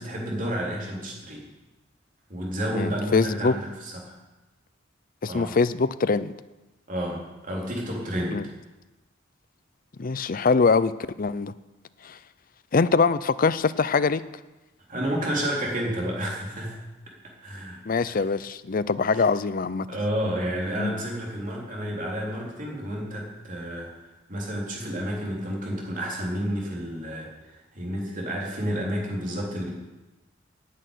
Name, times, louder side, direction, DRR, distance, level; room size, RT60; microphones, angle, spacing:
voice 1, 0.0-1.4 2.3-4.1 5.2-5.5 6.9-8.4 14.9-16.8 17.4-17.8 18.1-18.2 19.1-19.2 19.9-23.9 24.3-27.3 27.7-29.7, equal, 45° right, -2 dB, 3.7 m, -30 dB
voice 2, 2.7-3.6 5.2-6.3 8.3-8.4 10.0-11.5 12.0-12.2 12.7-14.2 17.9-19.9 20.8-20.9, left 4 dB, 45° left, 15 dB, 0.5 m, -23 dB
10.5 x 9.0 x 9.2 m, 1.1 s
head